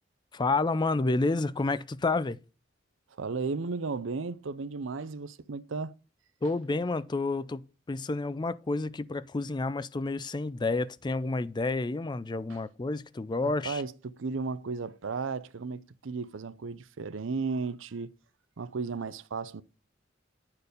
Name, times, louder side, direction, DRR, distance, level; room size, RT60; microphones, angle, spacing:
voice 1, 0.3-2.4 6.4-13.8, left 3 dB, 25° left, 0.4 m, -30 dB
voice 2, 3.2-5.9 12.5-12.6 13.4-18.1 18.6-19.6, right 4 dB, 85° right, 0.6 m, -34 dB
9.7 x 4.6 x 5.0 m
head